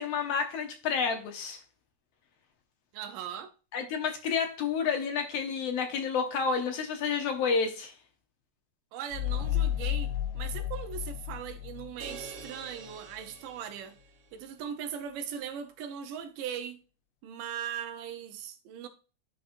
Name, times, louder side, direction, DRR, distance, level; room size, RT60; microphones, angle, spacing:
voice 1, 0.0-1.6 3.7-7.9, left 5 dB, 65° left, 1.6 m, -30 dB
voice 2, 2.9-3.5 8.9-14.0 14.3-16.8 17.2-18.9, right 8 dB, 85° right, 2.5 m, -39 dB
sound 1, 9.1-12.5, left 11 dB, 85° left, 2.1 m, -32 dB
sound 2, 12.0-14.3, right 6 dB, 60° right, 1.6 m, -47 dB
11.5 x 4.1 x 2.6 m
omnidirectional pair, 3.7 m